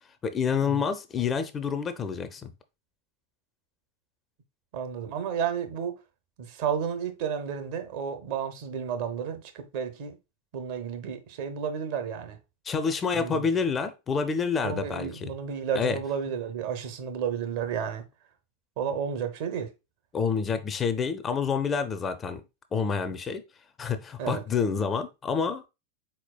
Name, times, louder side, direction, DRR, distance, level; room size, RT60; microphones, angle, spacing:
voice 1, 0.2-2.5 12.7-15.3 15.8-16.0 20.1-22.4 22.7-23.4 23.8-25.6, left 6 dB, 20° left, 0.4 m, -28 dB
voice 2, 4.7-5.9 6.4-10.2 10.5-12.4 13.1-13.5 14.6-18.0 18.8-19.7 24.2-24.4, right 7 dB, 50° right, 0.7 m, -32 dB
4.3 x 4.0 x 2.2 m
figure-of-eight pair, 90°, 0 cm